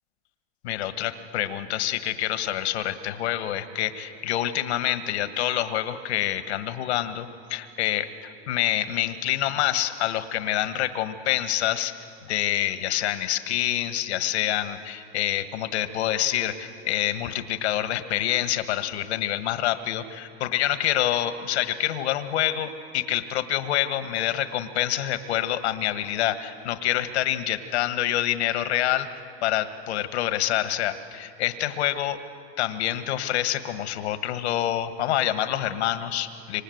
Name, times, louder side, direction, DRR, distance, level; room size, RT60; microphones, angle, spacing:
voice 1, 0.6-8.1 8.5-11.9 12.3-32.2 32.6-36.6, left 12 dB, 80° left, 10 dB, 1.6 m, -27 dB
27.0 x 25.5 x 8.0 m, 2.7 s
hypercardioid pair, 95°, 33 cm